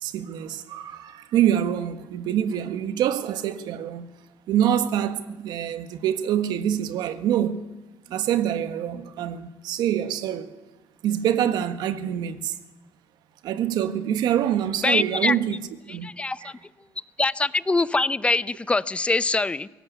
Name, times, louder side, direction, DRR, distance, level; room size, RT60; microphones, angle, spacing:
voice 1, 0.0-4.1 4.5-7.6 8.1-10.5 11.0-12.6 13.4-15.6 15.9-16.1 16.4-16.5, right 10 dB, 80° right, 1.6 m, -25 dB
voice 2, 14.8-15.4 16.0-16.5 17.2-19.7, left 3 dB, 15° left, 0.7 m, -23 dB
21.5 x 18.0 x 8.3 m
cardioid pair, 110°, 7 cm